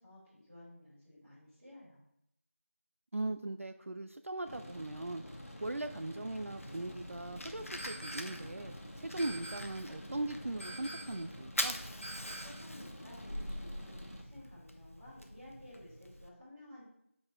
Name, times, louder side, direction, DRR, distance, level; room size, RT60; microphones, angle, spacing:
voice 1, 0.0-2.0 12.4-16.9, left 1 dB, 10° right, -18 dB, 2.1 m, -54 dB
voice 2, 3.1-11.8, right 2 dB, 70° right, 8 dB, 0.4 m, -39 dB
sound 1, 4.4-14.2, equal, 85° left, 1.6 m, -49 dB
Fire, 6.6-16.3, left 1 dB, 70° left, 0.8 m, -44 dB
sound 2, 7.8-8.5 9.2-9.9 10.6-11.3 12.0-12.7, right 1 dB, 50° left, 1.4 m, -47 dB
5.3 x 4.2 x 4.4 m, 0.77 s
figure-of-eight pair, 180°, 8 cm